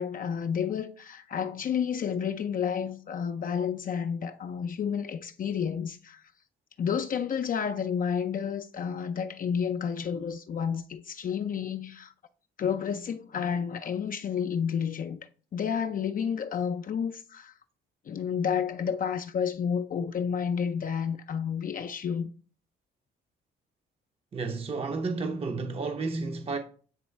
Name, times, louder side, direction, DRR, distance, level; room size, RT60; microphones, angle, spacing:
voice 1, 0.0-6.2 6.8-12.1 12.6-17.5 18.1-22.3, left 7 dB, 45° left, 0.5 m, -30 dB
voice 2, 24.3-26.6, right 3 dB, 30° right, 0.7 m, -31 dB
8.0 x 3.0 x 4.4 m
cardioid pair, 90°, 20 cm